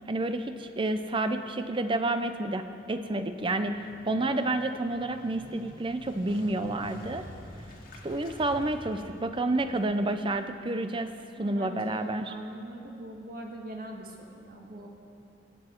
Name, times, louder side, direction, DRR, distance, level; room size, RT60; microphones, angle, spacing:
voice 1, 0.1-7.2 8.0-12.3, right 2 dB, 25° right, 9 dB, 0.5 m, -30 dB
Motorcycle, 3.6-10.4, equal, 50° left, 1.6 m, -48 dB
voice 2, 11.4-14.9, right 1 dB, 50° right, 1 dB, 1.6 m, -42 dB
21.0 x 7.8 x 4.5 m, 2.5 s
head